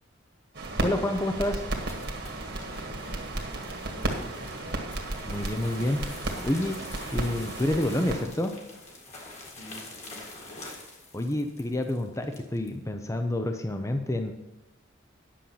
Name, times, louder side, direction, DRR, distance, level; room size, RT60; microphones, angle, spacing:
sound 1, 0.5-8.2, right 2 dB, 55° right, 1.7 m, -34 dB
voice 1, 0.8-1.7 5.2-6.0 6.4-6.8 7.1-8.5 11.1-14.3, left 1 dB, 15° left, 6 dB, 0.6 m, -28 dB
sound 2, 1.1-12.7, left 2 dB, 35° left, 1.8 m, -47 dB
voice 2, 2.8-4.9 9.4-10.7, equal, 90° left, 0 dB, 2.6 m, -50 dB
10.0 x 7.0 x 5.7 m, 0.96 s
head